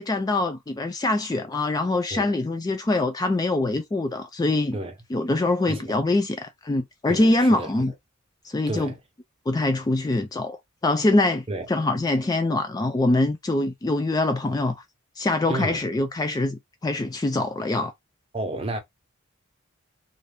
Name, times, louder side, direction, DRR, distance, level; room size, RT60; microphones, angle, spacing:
voice 1, 0.0-4.8 5.1-7.9 8.4-8.9 9.5-14.8 15.2-17.9, left 2 dB, 20° left, 0.3 m, -24 dB
voice 2, 7.1-7.7 8.7-9.0 11.5-11.7 15.5-15.8 18.3-18.8, right 2 dB, 30° right, 0.8 m, -31 dB
2.6 x 2.5 x 3.3 m
head